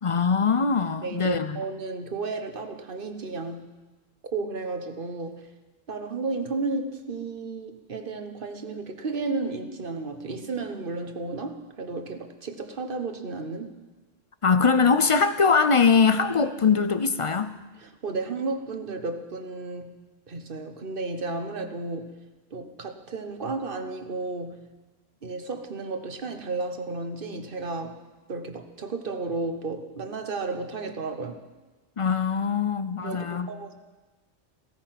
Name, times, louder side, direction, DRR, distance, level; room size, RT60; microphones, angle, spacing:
voice 1, 0.0-1.6 14.4-17.6 32.0-33.5, left 5 dB, 45° left, 0.4 m, -22 dB
voice 2, 1.0-3.7 4.3-5.5 5.9-13.7 17.8-20.0 20.3-22.2 22.5-24.6 25.2-28.0 28.3-31.4 33.0-33.7, right 3 dB, 50° right, 1.3 m, -33 dB
16.0 x 14.0 x 5.9 m
omnidirectional pair, 1.2 m